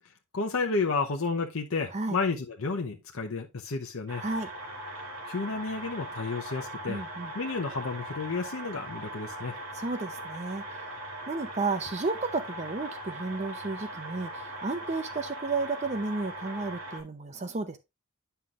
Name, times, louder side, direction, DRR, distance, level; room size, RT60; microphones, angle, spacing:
voice 1, 0.3-4.2 5.3-7.0 7.3-9.6, left 4 dB, 65° left, 0.8 m, -31 dB
sound 1, 4.1-17.0, right 1 dB, 80° right, 2.5 m, -40 dB
voice 2, 6.9-7.3 9.7-10.8 11.3-17.8, right 3 dB, 30° right, 0.6 m, -32 dB
9.5 x 5.7 x 2.4 m
head